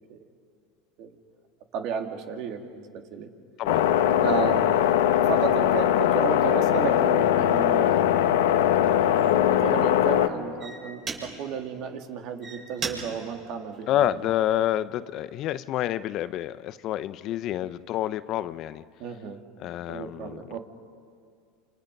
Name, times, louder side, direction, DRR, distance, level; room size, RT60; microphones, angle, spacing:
voice 1, 1.7-3.3 4.2-4.6 5.2-8.0 8.5-14.3 19.0-19.4 19.9-20.6, right 6 dB, 60° right, 4 dB, 2.5 m, -33 dB
sound 1, 3.7-10.3, left 10 dB, 85° left, 1.3 m, -21 dB
sound 2, 9.2-9.5 10.2-10.3 10.6-11.6 12.2-14.6 15.1-15.5, right 5 dB, 40° right, 6.6 m, -38 dB
voice 2, 13.9-18.8 19.6-20.4, left 12 dB, 50° left, 15 dB, 0.7 m, -28 dB
28.5 x 28.0 x 5.4 m, 2.2 s
supercardioid pair, 110°, 0 cm